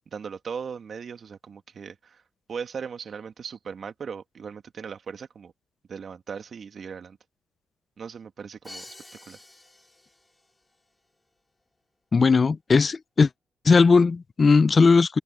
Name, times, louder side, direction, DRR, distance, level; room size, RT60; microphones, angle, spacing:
voice 1, 0.1-2.2 2.5-5.5 5.9-7.2 8.0-8.9 9.3-9.4, right 6 dB, 50° right, 2.0 m, -38 dB
Crash cymbal, 8.6-10.5, left 2 dB, 15° left, 4.8 m, -47 dB
voice 2, 12.1-13.3 13.6-15.2, left 4 dB, 35° left, 0.5 m, -18 dB
open air
cardioid pair, 90°, 0 cm